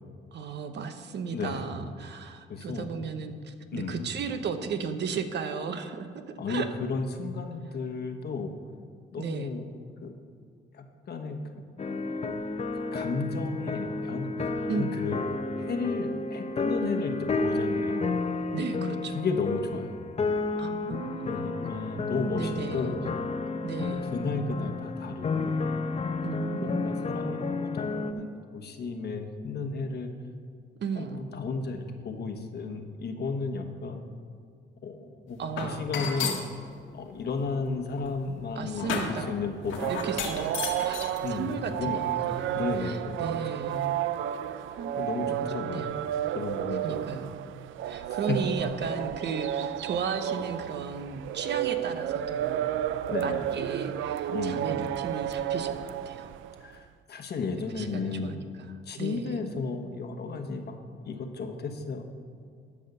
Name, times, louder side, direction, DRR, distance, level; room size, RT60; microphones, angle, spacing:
voice 1, 0.3-6.7 9.2-9.5 14.7-15.0 18.5-19.2 20.6-21.6 22.4-23.0 23.6-24.1 26.2-26.9 30.8-31.3 35.4-35.8 38.6-39.4 39.9-40.6 40.8-43.9 44.6-44.9 45.2-46.1 46.8-47.3 47.8-52.8 53.2-56.3 57.7-59.4, right 5 dB, 60° right, 8 dB, 0.9 m, -35 dB
voice 2, 1.3-1.6 2.5-2.9 3.7-4.1 6.4-6.6 6.9-8.5 9.1-9.6 10.0-10.1 10.7-11.8 12.7-15.2 15.6-18.0 19.1-19.9 21.2-23.0 24.1-25.6 26.6-30.1 31.0-34.0 34.8-36.4 36.9-39.9 41.2-42.0 42.5-43.4 44.9-45.8 46.3-47.0 48.3-48.4 53.1-53.4 54.3-54.6 56.6-58.4 58.8-60.8 61.0-62.0, left 4 dB, 55° left, 5 dB, 1.2 m, -33 dB
sound 1, 11.8-28.1, left 3 dB, 30° left, 0.8 m, -31 dB
sound 2, 35.6-36.5 37.2-41.2, left 6 dB, 85° left, 1.5 m, -34 dB
sound 3, 39.7-56.7, right 11 dB, 80° right, 0.4 m, -32 dB
12.0 x 5.6 x 6.7 m, 2.3 s
cardioid pair, 90°, 20 cm